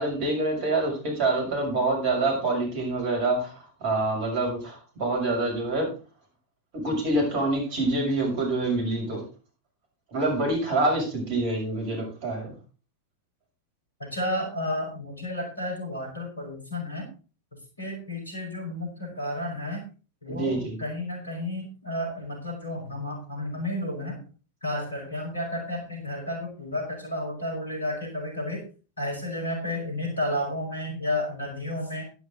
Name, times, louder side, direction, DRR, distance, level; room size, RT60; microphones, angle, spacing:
voice 1, 0.0-5.9 6.7-9.2 10.1-12.5 20.3-20.8, right 2 dB, 45° right, 1 dB, 6.5 m, -26 dB
voice 2, 14.0-17.1 17.8-19.8 20.2-24.2 24.6-28.6 29.0-32.0, left 1 dB, 75° left, 1 dB, 5.0 m, -32 dB
11.5 x 11.0 x 3.9 m, 0.36 s
figure-of-eight pair, 90°, 0 cm